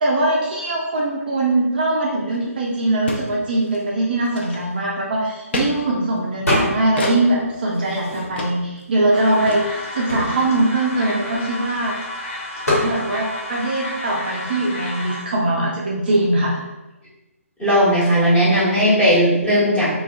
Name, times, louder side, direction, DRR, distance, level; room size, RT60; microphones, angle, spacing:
voice 1, 0.0-12.0 12.8-16.6, right 2 dB, 40° right, -4 dB, 0.3 m, -21 dB
sound 1, 2.3-2.4 2.6-2.7 3.1-3.3 3.6-3.8 4.2-4.9 5.5-5.7 7.0-7.2 7.7-7.8 8.4-8.5 8.8-8.9 9.1-9.2 9.5-9.6, left 2 dB, 45° left, 0.4 m, -27 dB
sound 2, 6.5-7.0 7.4-8.6 9.3-9.4 9.6-11.8 12.6-12.9, left 1 dB, 85° left, 1.1 m, -24 dB
sound 3, 9.1-15.2, left 1 dB, 65° left, 1.1 m, -32 dB
voice 2, 17.6-19.9, equal, 10° left, -11 dB, 1.0 m, -16 dB
2.4 x 2.2 x 2.4 m, 1.0 s
figure-of-eight pair, 145°, 8 cm